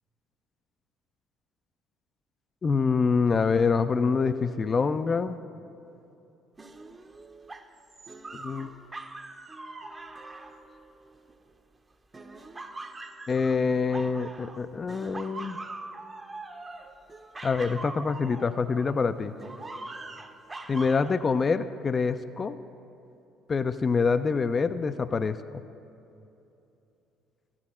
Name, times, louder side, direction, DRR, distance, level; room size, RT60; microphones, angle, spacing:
voice 1, 2.6-5.4 8.3-8.7 13.3-15.6 17.4-19.4 20.7-22.6 23.5-25.4, left 5 dB, 35° left, 12 dB, 0.3 m, -26 dB
sound 1, 6.6-11.6 12.1-14.6 14.9-19.0 19.4-21.2, right 2 dB, 25° right, 0.7 m, -42 dB
13.0 x 9.8 x 4.2 m, 2.9 s
hypercardioid pair, 60°, 0 cm